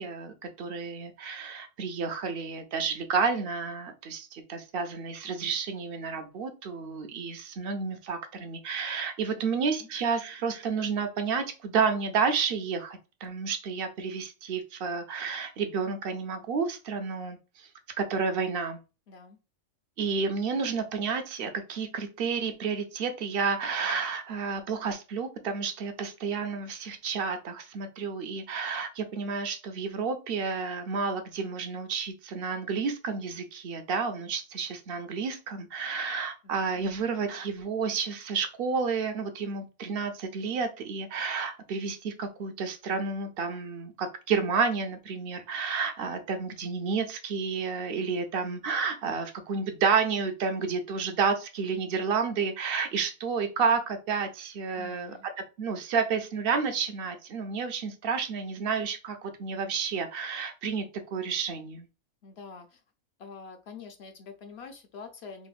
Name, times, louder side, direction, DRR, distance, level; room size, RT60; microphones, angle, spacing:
voice 1, 0.0-17.7 18.0-18.8 20.0-55.1 55.6-60.9 61.1-61.9, right 5 dB, 60° right, 7 dB, 0.6 m, -30 dB
voice 2, 19.1-19.4 36.4-36.8 54.8-55.3 62.2-62.8 63.2-65.5, left 5 dB, 65° left, 5 dB, 0.7 m, -46 dB
4.0 x 2.1 x 2.4 m, 0.31 s
omnidirectional pair, 1.4 m